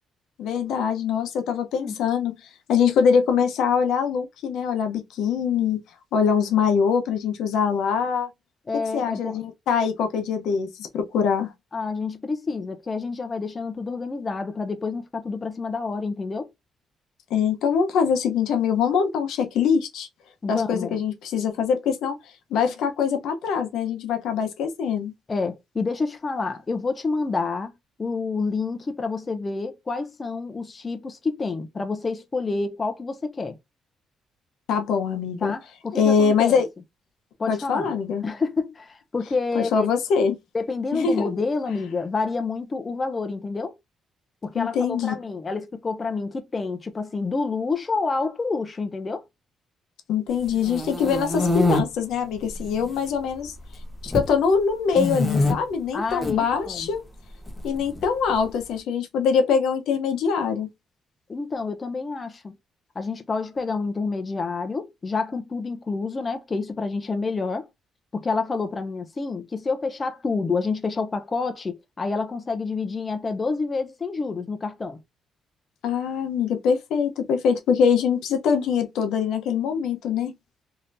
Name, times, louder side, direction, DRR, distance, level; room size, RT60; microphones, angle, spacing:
voice 1, 0.4-2.3 2.7-5.8 6.1-8.3 8.9-11.5 17.3-20.1 20.5-22.1 22.5-25.1 34.7-35.5 35.9-36.7 37.5-38.2 39.5-40.4 40.9-41.3 44.6-45.1 50.1-53.5 54.0-57.0 57.6-60.7 75.8-80.3, left 6 dB, 80° left, 0.8 m, -23 dB
voice 2, 8.7-9.4 11.7-16.5 20.4-21.0 25.3-27.7 28.0-33.6 35.4-36.6 37.4-37.9 38.2-39.9 40.5-43.7 44.4-49.2 55.9-56.9 61.3-62.5 62.9-67.7 68.1-75.0, left 4 dB, 30° left, 0.6 m, -28 dB
sound 1, 50.4-51.8 52.5-53.1 53.4-54.3 54.9-55.5 56.1-56.3 57.5-58.4, left 2 dB, 15° left, 1.0 m, -25 dB
3.3 x 2.8 x 2.6 m
cardioid pair, 90°, 0 cm